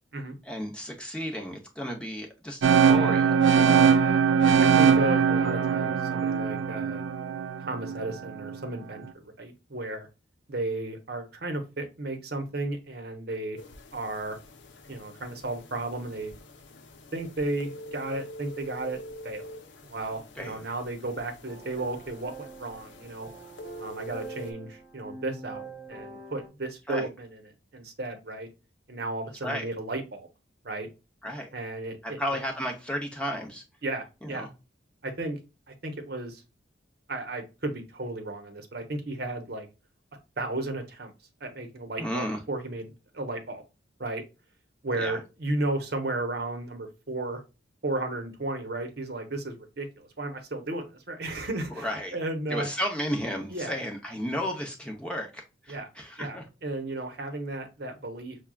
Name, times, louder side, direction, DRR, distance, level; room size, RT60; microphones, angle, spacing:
voice 1, 0.5-3.9 20.4-20.6 26.9-27.1 29.4-29.7 31.2-31.5 32.0-33.6 34.2-34.5 42.0-42.4 45.0-45.2 51.7-52.2 52.5-56.4, equal, 5° left, 1 dB, 0.6 m, -33 dB
sound 1, 2.6-8.6, right 6 dB, 80° right, 0.4 m, -22 dB
voice 2, 4.6-7.0 7.6-9.0 9.4-10.1 10.5-13.6 13.9-14.4 14.9-16.3 17.1-19.4 19.8-23.3 23.8-27.5 27.7-28.5 28.9-30.3 30.6-30.9 31.5-32.4 33.8-34.5 35.0-35.4 35.7-36.4 37.1-39.7 40.4-41.1 41.4-43.6 44.0-44.2 44.8-47.4 47.8-52.7 53.5-53.8 55.7-55.9 56.2-58.4, right 2 dB, 55° right, 6 dB, 0.8 m, -34 dB
sound 2, 13.6-24.5, left 1 dB, 70° left, 0.7 m, -46 dB
sound 3, 21.4-26.5, right 3 dB, 25° right, 1.2 m, -45 dB
6.0 x 2.3 x 2.2 m, 0.29 s
head